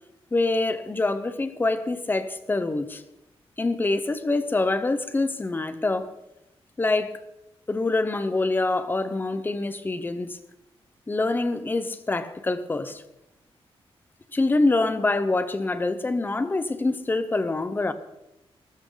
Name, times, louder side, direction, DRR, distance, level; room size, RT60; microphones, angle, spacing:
voice 1, 0.3-3.0 3.6-6.1 6.8-7.2 7.7-10.4 11.1-13.0 14.3-17.9, left 2 dB, 20° left, 1.0 m, -25 dB
19.0 x 15.0 x 4.0 m
wide cardioid pair, 160°, 10 cm